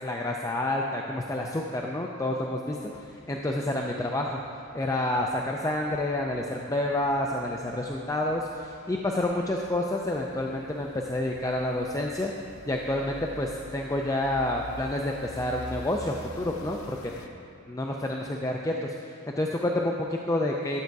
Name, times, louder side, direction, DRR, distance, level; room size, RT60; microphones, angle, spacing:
voice 1, 0.0-4.4 4.7-12.3 12.7-17.1 17.7-20.8, left 1 dB, 15° left, 0 dB, 0.4 m, -29 dB
sound 1, 2.7-17.3, left 1 dB, 90° left, 0.7 m, -48 dB
12.0 x 7.9 x 4.6 m, 2.5 s
head